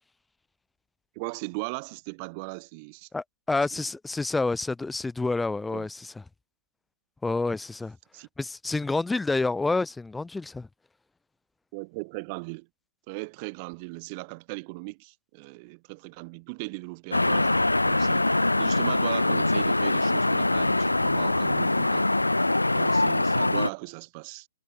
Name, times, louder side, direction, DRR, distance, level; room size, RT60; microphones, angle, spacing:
voice 1, 1.1-3.1 3.7-3.8 5.7-5.9 8.1-8.3 11.7-12.7 13.1-22.4 22.7-24.5, right 30 dB, 30° right, 1.5 m, -38 dB
voice 2, 3.1-6.1 7.2-8.0 8.4-10.7, left 3 dB, 5° left, 0.4 m, -28 dB
sound 1, 17.1-23.7, left 2 dB, 80° left, 0.6 m, -23 dB
figure-of-eight pair, 120°, 0 cm